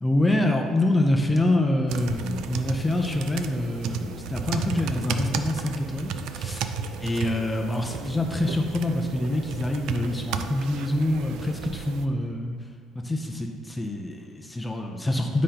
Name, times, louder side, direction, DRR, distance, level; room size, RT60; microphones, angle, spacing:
voice 1, 0.0-6.7 7.0-12.6 13.0-15.4, left 1 dB, 10° left, 1 dB, 0.5 m, -26 dB
sound 1, 1.9-12.1, right 6 dB, 70° right, 0.4 m, -34 dB
9.4 x 5.1 x 2.9 m, 2.3 s
cardioid pair, 160°, 0 cm